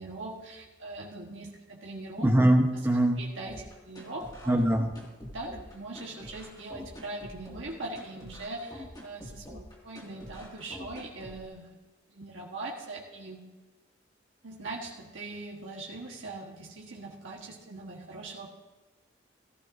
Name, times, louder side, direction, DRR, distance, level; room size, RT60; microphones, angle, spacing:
voice 1, 0.0-2.3 3.2-4.5 5.2-11.7 12.1-13.4 14.4-18.5, right 2 dB, 85° right, -3 dB, 1.5 m, -41 dB
voice 2, 2.2-3.2 4.5-4.9, right 1 dB, 10° right, 3 dB, 1.0 m, -22 dB
sound 1, 3.5-11.4, left 1 dB, 20° left, 2.2 m, -46 dB
15.5 x 14.0 x 2.7 m, 1.2 s
head